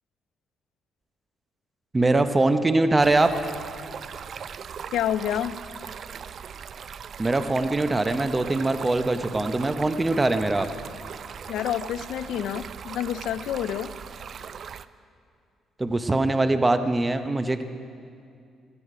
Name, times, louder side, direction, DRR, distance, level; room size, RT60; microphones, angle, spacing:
voice 1, 1.9-3.3 7.2-10.7 15.8-17.6, right 2 dB, 20° right, 9 dB, 0.7 m, -22 dB
Stream, 3.0-14.9, right 7 dB, 55° right, 0.4 m, -39 dB
voice 2, 4.9-5.6 11.5-13.9, left 10 dB, 80° left, 15 dB, 0.4 m, -28 dB
16.5 x 14.0 x 4.9 m, 2.4 s
cardioid pair, 90°, 0 cm